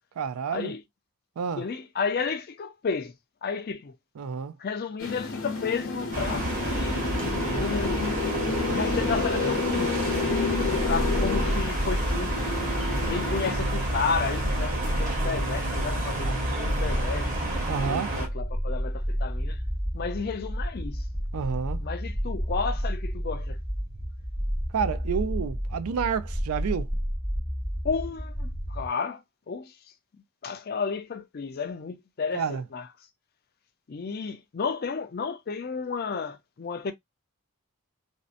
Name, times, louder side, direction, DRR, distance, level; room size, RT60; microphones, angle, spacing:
voice 1, 0.2-0.7 1.4-1.7 4.2-4.5 16.2-16.4 17.7-18.2 21.3-21.9 24.7-26.9 32.3-32.6, right 6 dB, 85° right, 0.4 m, -29 dB
voice 2, 1.6-3.1 3.4-3.9 4.6-7.0 7.5-8.1 8.7-10.0 10.6-12.3 13.1-17.4 17.8-19.6 19.9-21.0 21.8-23.6 27.8-29.7 30.4-32.9 33.9-36.9, left 5 dB, 45° left, 0.4 m, -32 dB
sound 1, 5.0-13.5, left 4 dB, 65° left, 0.7 m, -30 dB
sound 2, 6.1-18.3, right 2 dB, 35° right, 0.9 m, -30 dB
sound 3, 10.5-28.9, equal, ahead, 0.6 m, -31 dB
2.6 x 2.1 x 2.4 m
head